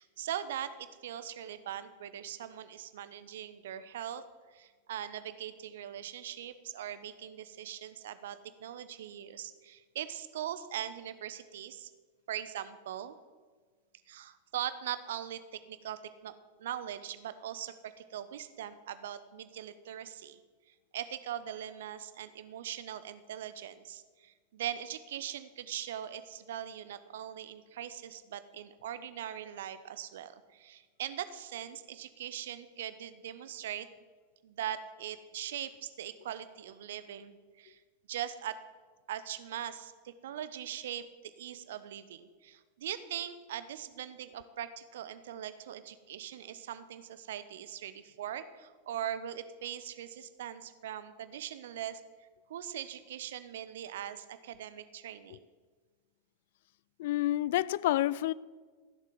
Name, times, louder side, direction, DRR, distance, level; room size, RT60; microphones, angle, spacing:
voice 1, 0.0-4.2 4.5-11.9 12.3-13.2 14.1-20.4 20.9-33.9 34.4-37.8 38.1-38.6 39.1-52.0 52.5-55.5, right 10 dB, 60° right, 0.9 m, -41 dB
voice 2, 57.0-58.3, left 14 dB, 55° left, 0.3 m, -29 dB
15.0 x 7.6 x 7.7 m
figure-of-eight pair, 90°, 0 cm